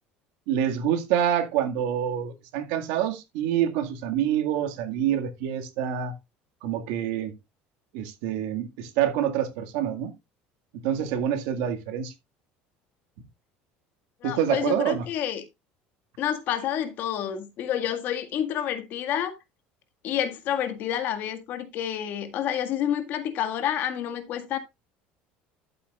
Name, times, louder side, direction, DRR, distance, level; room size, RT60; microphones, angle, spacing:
voice 1, 0.5-6.1 6.6-7.3 7.9-10.1 10.8-12.1 14.2-15.1, right 10 dB, 80° right, 1.9 m, -26 dB
voice 2, 14.2-15.4 16.2-19.4 20.0-24.6, left 10 dB, 50° left, 1.8 m, -29 dB
12.0 x 8.3 x 2.4 m
cardioid pair, 145°, 4 cm